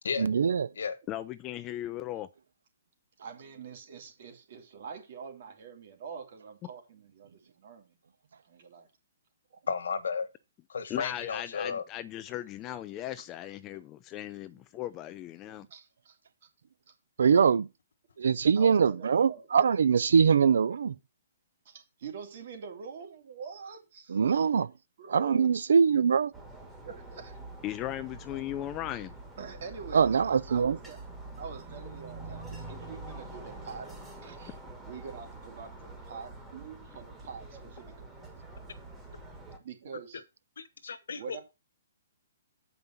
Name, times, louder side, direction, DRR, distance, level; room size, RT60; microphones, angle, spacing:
voice 1, 0.2-0.7 17.2-17.7 18.2-20.9 24.1-24.7 25.1-26.3 29.9-30.8, right 6 dB, 75° right, 0.6 m, -23 dB
voice 2, 1.1-2.3 10.9-15.7 27.6-29.1, left 13 dB, 20° left, 0.4 m, -37 dB
voice 3, 3.2-8.0 8.4-8.9 12.9-13.0 14.2-14.3 14.7-14.8 15.4-16.2 18.6-19.5 21.6-24.2 25.0-25.5 26.8-27.4 29.4-31.0 31.4-33.9 34.2-34.5 34.9-38.2 39.6-40.2 41.2-41.4, right 6 dB, 45° right, 2.5 m, -45 dB
voice 4, 9.7-10.3 10.7-11.8 40.6-41.4, left 5 dB, 80° left, 1.4 m, -33 dB
sound 1, 26.3-39.6, right 2 dB, 5° right, 1.4 m, -45 dB
8.0 x 5.3 x 5.8 m
hypercardioid pair, 165°, 0 cm